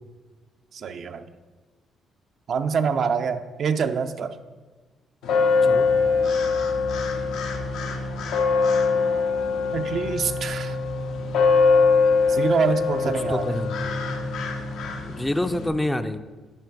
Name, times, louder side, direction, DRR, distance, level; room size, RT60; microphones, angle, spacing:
voice 1, 0.7-1.3 2.5-4.4 9.7-10.8 12.3-13.6, right 6 dB, 60° right, 8 dB, 0.5 m, -25 dB
sound 1, 5.2-15.7, left 4 dB, 90° left, 0.9 m, -23 dB
voice 2, 13.3-13.8 15.0-16.2, left 1 dB, 10° left, 10 dB, 0.4 m, -27 dB
11.0 x 4.3 x 4.6 m, 1.3 s
cardioid pair, 90°, 0 cm